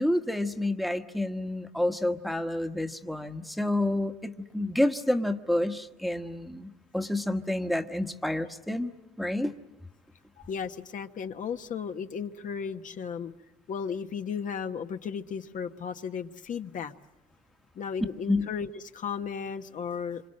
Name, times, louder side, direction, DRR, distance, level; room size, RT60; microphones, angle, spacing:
voice 1, 0.0-8.9 9.2-9.5 18.3-18.5, left 1 dB, ahead, 6 dB, 1.3 m, -29 dB
voice 2, 10.4-13.3 13.7-16.9 17.7-20.2, left 6 dB, 50° left, 7 dB, 1.3 m, -35 dB
27.5 x 26.0 x 7.7 m, 1.0 s
cardioid pair, 110°, 17 cm